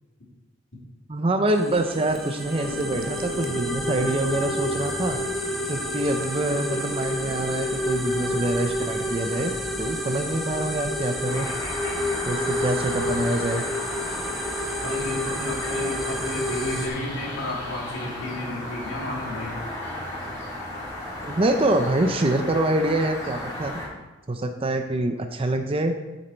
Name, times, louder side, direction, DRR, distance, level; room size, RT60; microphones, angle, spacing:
voice 1, 1.1-5.2 5.7-9.5 9.8-11.5 12.3-13.6 21.2-23.7 24.3-26.0, right 1 dB, 30° right, 5 dB, 0.6 m, -25 dB
sound 1, 1.5-16.9, left 1 dB, ahead, 1.0 m, -29 dB
sound 2, 2.1-8.5, right 2 dB, 90° right, 0.8 m, -42 dB
sound 3, 11.2-23.9, left 1 dB, 15° left, 2.8 m, -35 dB
voice 2, 14.8-19.6, left 1 dB, 70° left, -3 dB, 2.6 m, -32 dB
8.3 x 6.8 x 4.5 m, 1.1 s
head